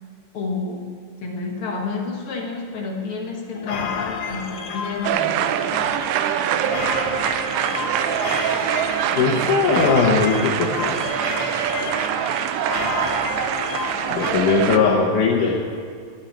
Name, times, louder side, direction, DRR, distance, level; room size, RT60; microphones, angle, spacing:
voice 1, 0.3-0.9 1.2-5.4, left 4 dB, 50° left, 1 dB, 1.8 m, -29 dB
sound 1, 3.5-14.3, left 6 dB, 85° left, 1.2 m, -31 dB
sound 2, 5.0-14.8, right 10 dB, 80° right, 2.1 m, -24 dB
voice 2, 8.2-8.8 9.1-11.1 14.1-15.6, left 4 dB, 70° left, -2 dB, 2.6 m, -20 dB
12.5 x 7.3 x 9.9 m, 2.2 s
omnidirectional pair, 3.9 m